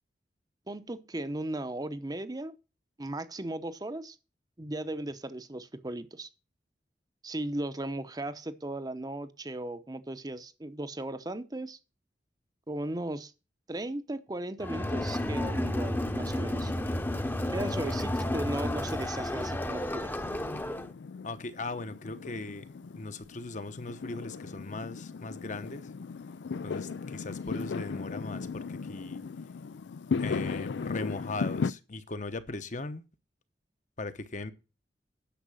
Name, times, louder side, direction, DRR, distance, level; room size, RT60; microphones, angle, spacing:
voice 1, 0.7-2.5 3.0-4.2 4.6-6.3 7.2-11.8 12.7-13.3 13.7-16.7 17.5-20.1, right 1 dB, 20° right, 0.8 m, -36 dB
Crowd, 14.6-20.9, left 1 dB, 10° left, 0.9 m, -32 dB
Fireworks, 17.1-31.7, left 5 dB, 85° left, 0.4 m, -37 dB
voice 2, 17.6-17.9 21.2-25.8 26.6-29.2 30.2-33.0 34.0-34.5, left 3 dB, 45° left, 1.0 m, -39 dB
10.5 x 6.6 x 6.3 m
head